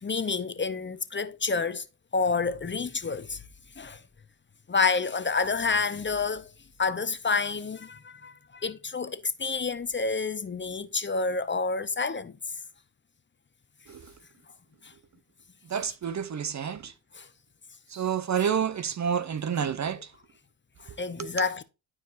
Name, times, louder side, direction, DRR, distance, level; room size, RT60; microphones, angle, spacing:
voice 1, 0.0-1.8 2.1-3.4 3.8-4.0 4.7-6.5 6.8-12.3 14.8-14.9 17.1-17.3 20.8-21.6, left 4 dB, 25° left, 0.7 m, -29 dB
voice 2, 15.7-16.9 17.9-20.1 21.2-21.3, right 8 dB, 35° right, 0.6 m, -29 dB
12.0 x 4.9 x 2.6 m
supercardioid pair, 70°, 47 cm